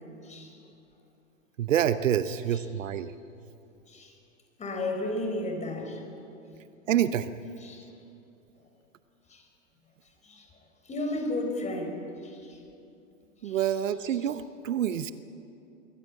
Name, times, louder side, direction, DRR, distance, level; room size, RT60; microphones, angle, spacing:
voice 1, 0.2-0.6 2.5-2.6 3.9-4.2 4.6-6.0 7.6-7.9 9.3-9.5 10.2-10.5 10.8-12.6 13.4-13.6 14.1-14.3, left 1 dB, 15° left, 3 dB, 4.4 m, -34 dB
voice 2, 1.6-3.1 6.9-7.4 13.4-15.1, right 10 dB, 65° right, 13 dB, 1.0 m, -27 dB
23.5 x 16.0 x 8.3 m, 2.7 s
hypercardioid pair, 110°, 41 cm